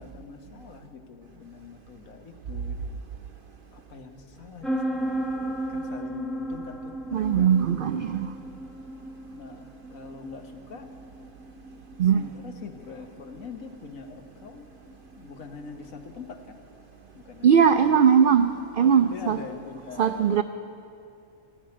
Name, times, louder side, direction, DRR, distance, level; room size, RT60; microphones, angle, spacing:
voice 1, 0.0-3.1 3.7-8.0 9.3-10.9 12.0-14.7 15.1-16.6 17.1-18.0 18.8-20.4, left 5 dB, 70° left, 6 dB, 1.6 m, -43 dB
sound 1, 4.6-16.1, right 1 dB, ahead, 0.4 m, -36 dB
voice 2, 7.1-8.3 12.0-12.2 17.4-19.4 20.0-20.4, right 7 dB, 80° right, 10 dB, 0.4 m, -20 dB
14.0 x 10.0 x 9.7 m, 2.6 s
omnidirectional pair, 1.5 m